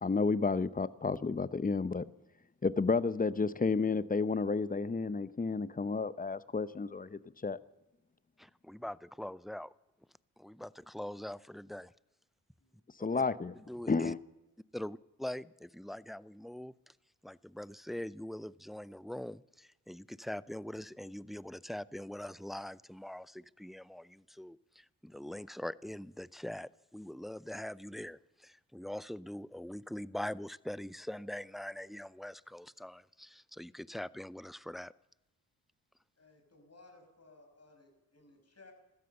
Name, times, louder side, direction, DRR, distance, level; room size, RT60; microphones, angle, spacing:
voice 1, 0.0-2.1 2.6-7.6 13.0-13.5 13.9-14.2, left 4 dB, 20° left, 0.8 m, -31 dB
voice 2, 8.4-9.7 10.4-11.9 13.1-13.2 13.5-14.1 14.7-16.9 17.2-34.9, left 1 dB, ahead, 0.4 m, -43 dB
voice 3, 12.6-13.2 36.2-38.7, left 2 dB, 35° left, 6.1 m, -60 dB
15.5 x 13.5 x 6.8 m
hypercardioid pair, 40°, 43 cm